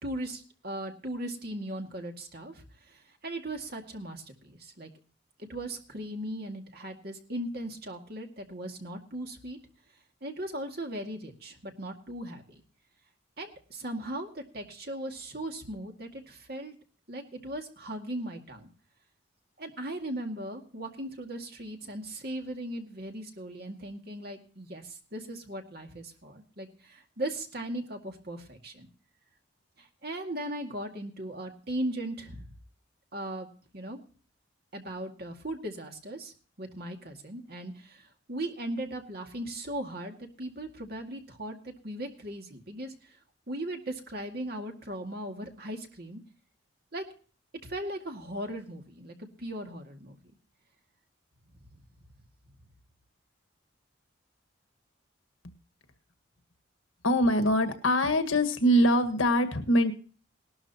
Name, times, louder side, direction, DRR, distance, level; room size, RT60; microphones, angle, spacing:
voice 1, 0.0-4.9 5.4-9.6 10.2-12.6 13.4-16.8 17.1-18.7 19.6-28.9 29.8-32.5 33.1-33.5 33.7-34.0 34.7-36.3 36.6-43.2 43.5-46.2 46.9-47.0 47.6-50.2, right 1 dB, 50° right, 3 dB, 2.1 m, -38 dB
voice 2, 57.0-59.9, equal, 80° left, 8 dB, 1.6 m, -23 dB
19.0 x 12.5 x 2.9 m, 0.39 s
head